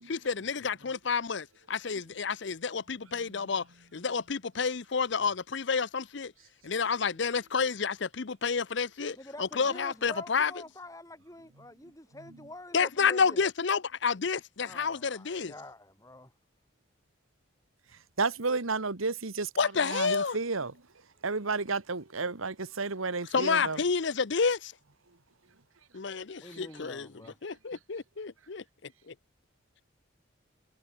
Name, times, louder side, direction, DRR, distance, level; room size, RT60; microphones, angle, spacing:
voice 1, 0.1-3.6 3.9-6.3 6.6-10.5 12.7-15.5 19.6-20.4 23.3-24.7 25.9-27.1 27.4-28.6 29.1-29.2, left 5 dB, 60° left, 0.7 m, -29 dB
voice 2, 9.1-13.4 14.6-16.3 26.4-27.4, left 1 dB, 15° left, 5.2 m, -47 dB
voice 3, 18.2-19.5 19.8-20.7 21.2-23.8, right 4 dB, 90° right, 1.7 m, -31 dB
head